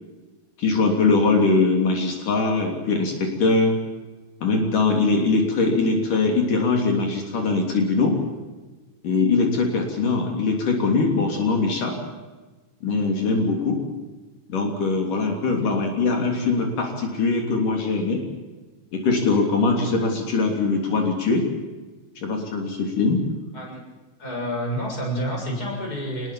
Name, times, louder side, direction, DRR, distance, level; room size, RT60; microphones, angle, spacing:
voice 1, 0.6-3.8 4.4-8.2 9.0-12.0 12.8-13.8 14.5-18.2 18.9-21.5 22.2-23.2, left 3 dB, 80° left, 2 dB, 4.9 m, -22 dB
voice 2, 15.5-15.8 23.5-23.8 24.2-26.3, equal, 25° left, 0 dB, 7.2 m, -29 dB
27.0 x 20.5 x 7.6 m, 1.2 s
omnidirectional pair, 3.7 m